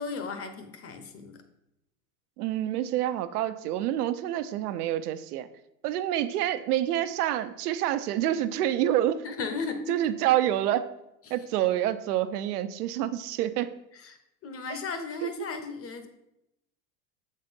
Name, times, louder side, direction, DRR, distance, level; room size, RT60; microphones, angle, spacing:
voice 1, 0.0-1.4 9.2-10.0 11.3-11.4 13.9-14.2 14.4-16.1, left 4 dB, 30° left, 7 dB, 1.1 m, -35 dB
voice 2, 2.4-5.5 5.8-9.2 9.9-10.9 11.3-13.7 15.2-15.5, right 12 dB, 85° right, 12 dB, 0.7 m, -27 dB
7.5 x 4.3 x 5.2 m, 0.85 s
supercardioid pair, 110°, 45 cm